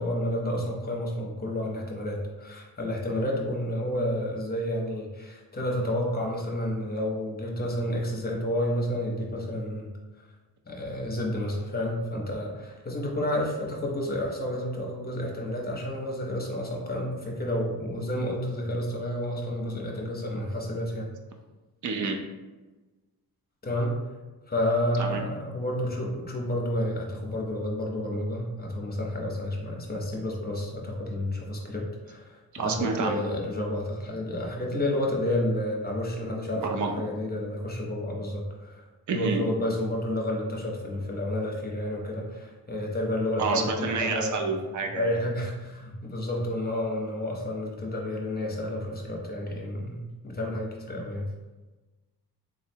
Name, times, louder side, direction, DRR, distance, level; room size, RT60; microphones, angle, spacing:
voice 1, 0.0-9.9 10.7-21.1 23.6-24.0 24.5-38.8 39.1-44.5 45.0-51.3, left 1 dB, 25° left, -1 dB, 0.7 m, -30 dB
voice 2, 21.8-22.2 25.0-25.2 32.5-33.4 36.6-36.9 39.1-39.4 43.4-45.1, right 4 dB, 50° right, 4 dB, 0.5 m, -29 dB
3.7 x 3.1 x 2.7 m, 1.2 s
wide cardioid pair, 140°, 38 cm